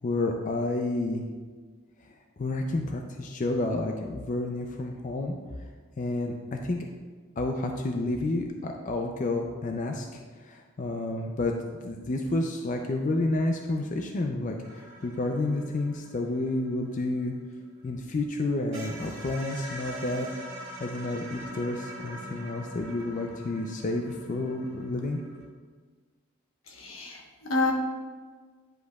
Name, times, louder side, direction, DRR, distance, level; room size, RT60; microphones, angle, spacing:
voice 1, 0.0-1.2 2.4-5.3 6.0-6.8 7.4-11.5 11.8-17.3 17.8-20.3 20.8-25.2, left 2 dB, 40° left, 3 dB, 0.4 m, -30 dB
sound 1, 14.6-18.0 18.3-18.4 18.7-25.5, equal, 70° right, 1.8 m, -44 dB
voice 2, 26.7-27.7, left 3 dB, 85° left, 1 dB, 1.1 m, -29 dB
10.0 x 5.0 x 2.3 m, 1.5 s
head